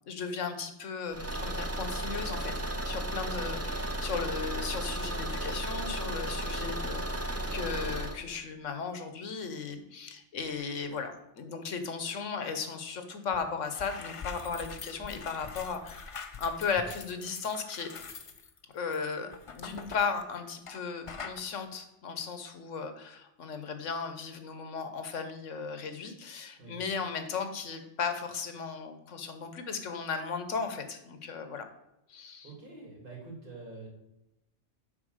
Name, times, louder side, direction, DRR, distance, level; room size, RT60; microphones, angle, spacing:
voice 1, 0.1-2.5 2.9-17.9 18.7-31.7 32.1-32.5, left 5 dB, 80° left, 8 dB, 1.3 m, -36 dB
Car / Engine, 1.1-8.2, right 1 dB, 20° right, 0.4 m, -34 dB
sound 1, 13.3-13.4 13.7-20.8 21.1-21.4, left 5 dB, 40° left, 0.5 m, -44 dB
voice 2, 32.4-33.9, right 3 dB, 45° right, -3 dB, 2.9 m, -46 dB
7.6 x 4.4 x 6.4 m, 0.86 s
omnidirectional pair, 1.3 m